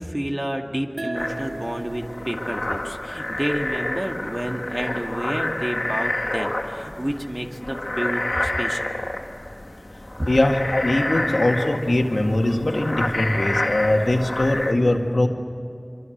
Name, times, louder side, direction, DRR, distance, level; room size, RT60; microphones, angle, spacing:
voice 1, 0.0-8.9 10.2-10.3, right 1 dB, 30° right, 3 dB, 2.2 m, -29 dB
sound 1, 1.0-4.2, right 1 dB, 85° right, 1.4 m, -38 dB
sound 2, 1.1-14.7, left 1 dB, 60° left, 2.3 m, -29 dB
voice 2, 10.3-15.3, left 1 dB, 80° left, 3 dB, 2.0 m, -21 dB
24.5 x 24.5 x 8.1 m, 2.5 s
wide cardioid pair, 40°, 0 cm